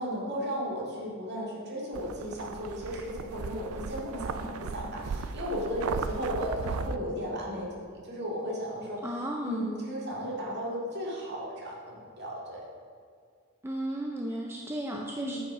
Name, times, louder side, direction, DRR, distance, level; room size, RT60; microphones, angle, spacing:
voice 1, 0.0-9.0 9.4-12.6 15.2-15.4, equal, 50° right, -4 dB, 2.2 m, -35 dB
sound 1, 1.9-7.0, right 5 dB, 80° right, 0.4 m, -36 dB
voice 2, 9.0-9.7 13.6-15.4, right 1 dB, 10° right, 0 dB, 0.4 m, -34 dB
9.0 x 5.3 x 4.8 m, 2.1 s
head